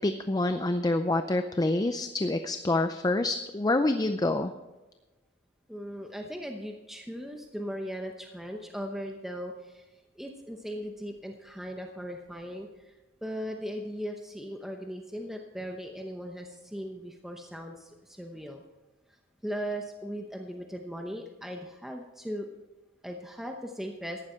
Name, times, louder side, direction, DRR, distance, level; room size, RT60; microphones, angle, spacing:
voice 1, 0.0-4.5, left 2 dB, 20° left, 9 dB, 0.5 m, -27 dB
voice 2, 5.7-9.8 10.2-12.7 13.2-18.6 19.4-22.5 23.0-24.2, equal, ahead, 2 dB, 0.8 m, -38 dB
14.5 x 11.0 x 4.4 m, 1.1 s
head